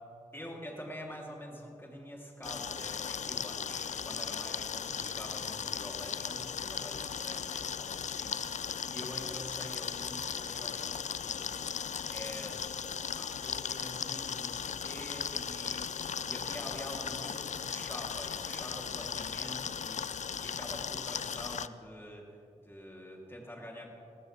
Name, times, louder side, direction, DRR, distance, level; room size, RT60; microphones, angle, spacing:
voice 1, 0.3-12.6 13.1-22.3 22.6-23.9, equal, 15° left, -2 dB, 3.2 m, -46 dB
sound 1, 2.4-21.7, left 7 dB, 60° left, 0.4 m, -37 dB
18.5 x 15.0 x 3.5 m, 2.7 s
cardioid pair, 60°, 14 cm